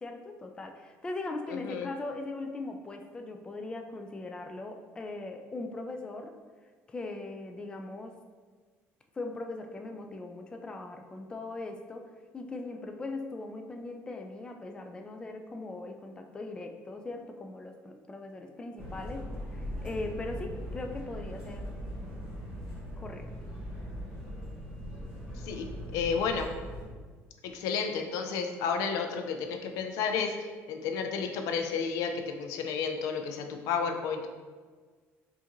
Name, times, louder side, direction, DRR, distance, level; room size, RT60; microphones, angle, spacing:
voice 1, 0.0-6.4 6.9-8.2 9.1-21.8 23.0-23.3, left 2 dB, 15° left, 4 dB, 0.3 m, -40 dB
voice 2, 1.5-1.9 25.4-25.7 25.9-26.5 27.4-34.3, left 6 dB, 80° left, 5 dB, 0.4 m, -32 dB
sound 1, 18.8-26.8, equal, 20° right, 1.4 m, -40 dB
4.6 x 2.6 x 3.0 m, 1.5 s
cardioid pair, 120°, 6 cm